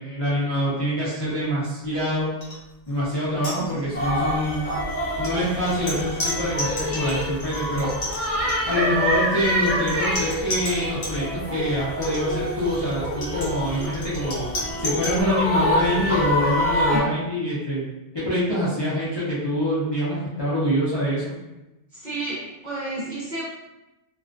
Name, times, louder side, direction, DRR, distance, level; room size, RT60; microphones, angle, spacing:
voice 1, 0.0-2.3 2.9-4.7 5.2-7.9 8.7-14.5 14.8-17.9 18.1-21.3, equal, 40° left, -10 dB, 0.3 m, -25 dB
sound 1, 2.4-2.6 2.9-3.0 3.4-4.1 4.9-11.2 11.9-15.2, left 1 dB, 60° left, 1.1 m, -33 dB
sound 2, 3.9-17.0, equal, 10° right, 1.1 m, -26 dB
voice 2, 21.9-23.4, right 2 dB, 50° right, -7 dB, 0.6 m, -31 dB
2.3 x 2.3 x 2.4 m, 0.99 s
omnidirectional pair, 1.3 m